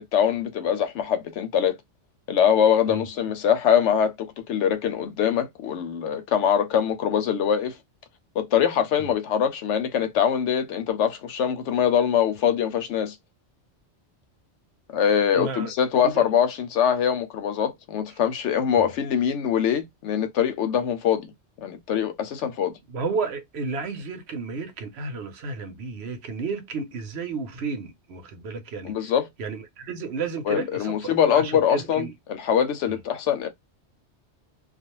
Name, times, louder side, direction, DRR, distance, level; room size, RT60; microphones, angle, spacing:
voice 1, 0.1-1.8 2.3-4.1 4.5-7.8 8.4-13.2 14.9-21.3 21.6-22.8 28.8-29.3 30.5-33.5, left 8 dB, 85° left, 0.9 m, -23 dB
voice 2, 15.3-15.7 16.0-16.3 18.7-18.9 22.9-29.1 29.4-32.1 32.9-33.0, right 4 dB, 65° right, 0.9 m, -32 dB
2.4 x 2.2 x 2.9 m
omnidirectional pair, 1.2 m